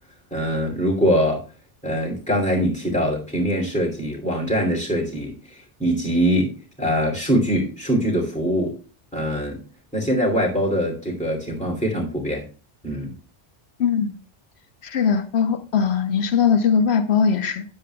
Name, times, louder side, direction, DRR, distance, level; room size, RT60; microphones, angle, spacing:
voice 1, 0.3-1.4 1.8-5.3 5.8-8.8 9.1-9.6 9.9-12.4 12.8-13.1, equal, 5° left, 2.7 m, -23 dB
voice 2, 13.8-14.2 14.8-17.6, left 6 dB, 90° left, 1.1 m, -20 dB
12.5 x 9.5 x 2.3 m
omnidirectional pair, 1.0 m